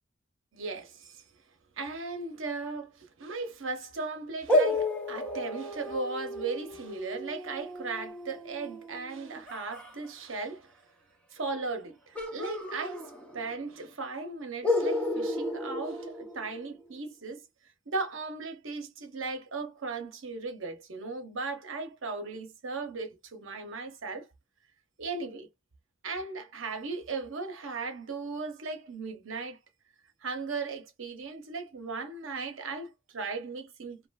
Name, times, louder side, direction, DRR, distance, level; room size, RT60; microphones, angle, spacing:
voice 1, 0.5-1.2 1.8-10.7 11.3-13.0 13.3-17.4 17.9-24.3 25.0-25.5 26.0-29.6 30.2-34.1, right 3 dB, 65° right, 0.8 m, -37 dB
sound 1, 4.5-9.9 12.1-13.6 13.9-14.0 14.6-16.8, left 1 dB, 5° left, 0.6 m, -32 dB
2.8 x 2.4 x 2.3 m
head